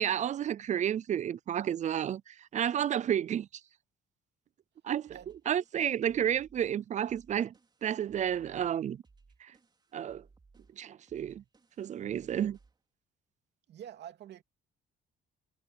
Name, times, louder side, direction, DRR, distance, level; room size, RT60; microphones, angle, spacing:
voice 1, 0.0-3.5 4.8-5.1 5.5-7.5 7.8-9.0 9.4-9.5 9.9-10.2 10.8-11.4 11.8-12.6, right 9 dB, 40° right, 0.4 m, -31 dB
sound 1, 5.0-12.9, right 4 dB, 20° right, 4.7 m, -63 dB
voice 2, 13.7-14.4, right 10 dB, 65° right, 2.9 m, -47 dB
cardioid pair, 150°, 19 cm